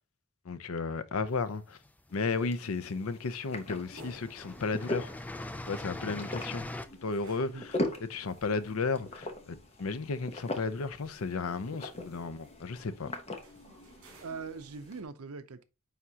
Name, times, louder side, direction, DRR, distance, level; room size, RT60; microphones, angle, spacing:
voice 1, 0.4-1.8 2.1-5.1 5.7-6.7 7.0-13.1, left 4 dB, 70° left, 0.6 m, -34 dB
sound 1, 1.5-2.3 3.2-3.3 3.6-6.9, left 1 dB, 5° left, 0.4 m, -42 dB
sound 2, 2.1-15.0, left 1 dB, 30° left, 1.0 m, -41 dB
sound 3, 3.8-15.1, equal, 65° right, 2.9 m, -58 dB
voice 2, 14.0-15.6, right 4 dB, 80° right, 0.7 m, -42 dB
9.2 x 3.7 x 2.8 m
head